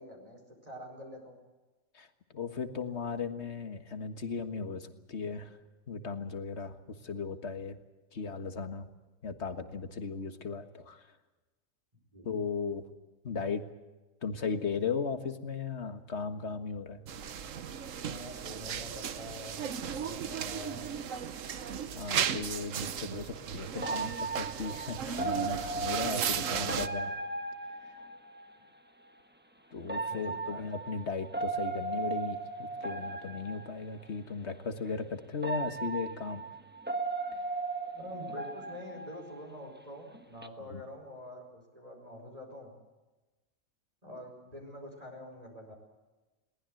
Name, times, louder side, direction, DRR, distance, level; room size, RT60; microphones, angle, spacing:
voice 1, 0.0-1.4 12.1-12.3 17.0-17.4 18.1-21.0 30.1-30.7 37.9-42.7 44.0-45.7, left 1 dB, 25° right, 1 dB, 4.9 m, -46 dB
voice 2, 2.3-5.6 5.9-6.8 7.0-7.8 8.1-8.9 9.2-11.1 12.3-12.8 13.2-13.6 14.2-17.0 21.4-27.1 27.9-28.0 29.7-36.4 37.3-37.4 40.7-40.8, left 5 dB, 55° left, 8 dB, 1.8 m, -37 dB
sound 1, 17.1-26.9, right 8 dB, 70° right, 1.3 m, -35 dB
sound 2, 22.3-22.5 23.8-28.6 29.8-34.1 34.9-35.0 35.4-39.8 40.1-40.5, right 3 dB, 10° right, 1.2 m, -37 dB
22.0 x 19.0 x 7.7 m, 1.2 s
omnidirectional pair, 1.4 m